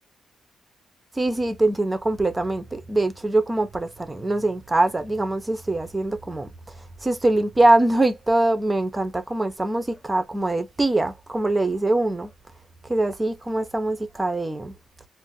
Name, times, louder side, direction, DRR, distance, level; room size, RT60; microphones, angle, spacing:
voice 1, 1.2-6.5 7.0-12.3 12.9-14.7, right 2 dB, 15° right, 0.6 m, -23 dB
2.5 x 2.1 x 3.9 m
cardioid pair, 135°, 0 cm